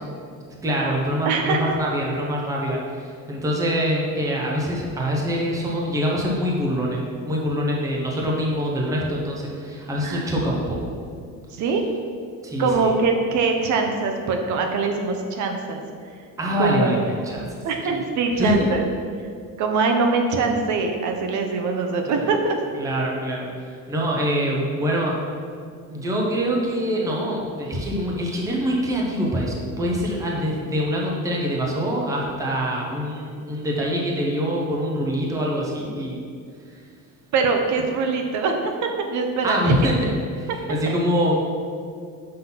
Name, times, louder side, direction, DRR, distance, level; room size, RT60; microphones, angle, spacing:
voice 1, 0.6-10.9 12.4-12.9 16.4-17.9 18.3-18.7 22.1-22.3 22.7-25.2 25.9-36.2 36.7-36.8 39.4-39.9 40.3-41.4, equal, 10° right, -3 dB, 0.7 m, -24 dB
voice 2, 1.3-1.8 10.0-10.3 11.5-11.8 12.6-15.8 16.6-17.0 17.6-18.8 19.6-22.6 37.3-38.7 39.0-39.7, right 4 dB, 60° right, 4 dB, 0.7 m, -23 dB
5.7 x 3.8 x 5.7 m, 2.3 s
cardioid pair, 180°, 34 cm